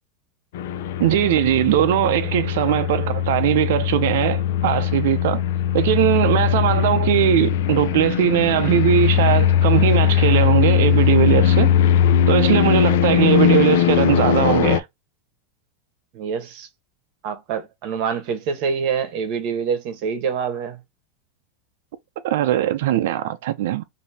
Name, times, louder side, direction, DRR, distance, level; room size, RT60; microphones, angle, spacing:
sound 1, 0.5-14.8, left 10 dB, 65° left, 0.5 m, -19 dB
voice 1, 1.0-5.4 5.7-11.7 12.3-14.9 22.2-23.8, right 12 dB, 65° right, 0.5 m, -20 dB
voice 2, 16.1-16.7 17.2-20.8, right 6 dB, 40° right, 1.2 m, -26 dB
5.1 x 2.8 x 2.8 m
supercardioid pair, 175°, 0 cm